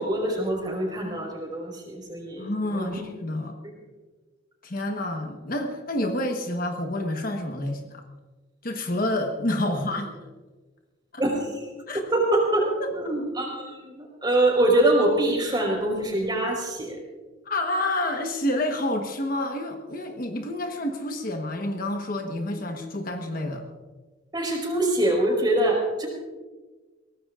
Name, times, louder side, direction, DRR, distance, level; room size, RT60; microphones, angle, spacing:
voice 1, 0.0-3.0 3.6-3.7 9.7-9.8 11.2-11.7 12.1-17.0 22.6-22.7 24.3-26.1, right 1 dB, 20° right, 0 dB, 4.5 m, -24 dB
voice 2, 2.4-3.6 4.6-8.0 8.6-10.1 11.1-11.2 11.9-12.0 12.8-12.9 17.5-23.6, left 1 dB, 45° left, 4 dB, 1.2 m, -28 dB
22.5 x 18.0 x 2.5 m, 1.3 s
head